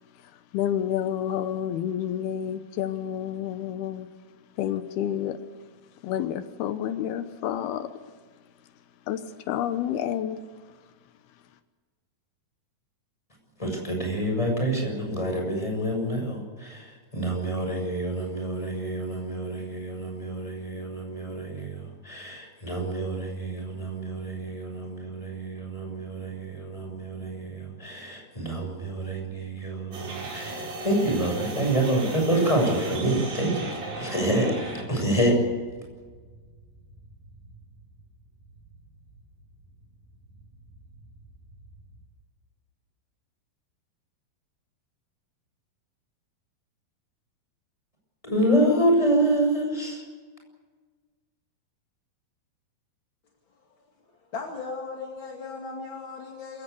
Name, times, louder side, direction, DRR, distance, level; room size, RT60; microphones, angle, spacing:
voice 1, 0.2-4.1 4.6-5.4 6.0-7.9 9.1-10.4, left 10 dB, 85° left, 10 dB, 3.0 m, -29 dB
voice 2, 13.6-33.7 34.0-34.5 34.9-35.4 48.2-50.0, right 1 dB, 10° left, 1 dB, 6.8 m, -27 dB
sound 1, 29.9-42.0, right 3 dB, 65° right, 6.9 m, -39 dB
voice 3, 54.1-56.6, left 4 dB, 35° left, 1 dB, 2.5 m, -37 dB
27.5 x 16.5 x 8.4 m, 1.5 s
omnidirectional pair, 4.4 m